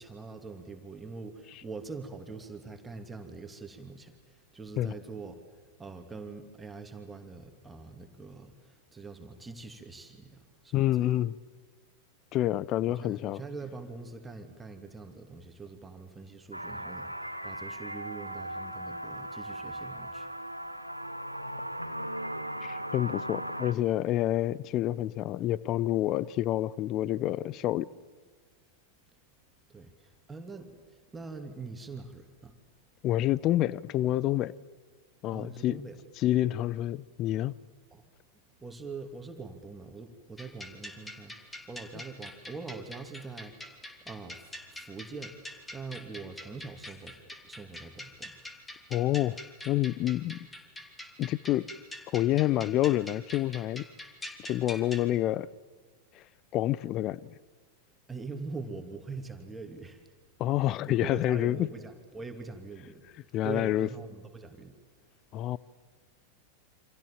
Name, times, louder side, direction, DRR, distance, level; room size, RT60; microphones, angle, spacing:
voice 1, 0.0-5.3 5.8-11.2 12.9-20.3 29.7-32.5 35.3-36.0 37.9-38.1 38.6-45.3 45.7-47.2 47.4-48.3 58.1-60.0 60.6-64.7, right 4 dB, 10° right, 2.7 m, -43 dB
voice 2, 10.7-11.4 12.3-13.4 22.6-27.9 33.0-34.5 35.2-35.8 36.2-37.5 48.9-49.4 49.6-50.4 51.2-51.7 52.1-53.9 54.4-55.5 56.1-56.2 56.5-57.3 60.4-61.7 63.3-63.9 65.3-65.6, left 14 dB, 35° left, 0.7 m, -28 dB
sound 1, 16.5-23.7, right 1 dB, 90° right, 1.4 m, -38 dB
sound 2, 40.4-55.1, left 1 dB, 10° left, 3.0 m, -45 dB
29.0 x 26.0 x 7.4 m
figure-of-eight pair, 90°, 0 cm